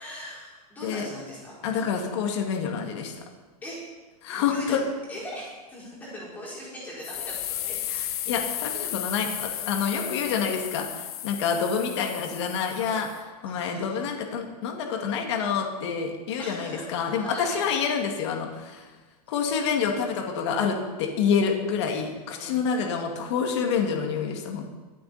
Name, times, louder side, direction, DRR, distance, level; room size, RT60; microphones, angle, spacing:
voice 1, 0.0-1.8 3.6-3.8 4.3-4.8 5.1-8.0 9.2-9.6 10.1-10.2 12.8-13.0 13.4-14.2 16.4-17.6 22.3-22.6, left 1 dB, 10° left, -7 dB, 4.5 m, -41 dB
voice 2, 1.6-3.1 4.2-4.8 7.9-13.1 13.4-18.9 19.3-24.6, left 6 dB, 45° left, 3 dB, 2.1 m, -27 dB
sound 1, 7.0-13.2, left 12 dB, 70° left, 0.9 m, -34 dB
23.0 x 7.7 x 4.2 m, 1.3 s
supercardioid pair, 180°, 20 cm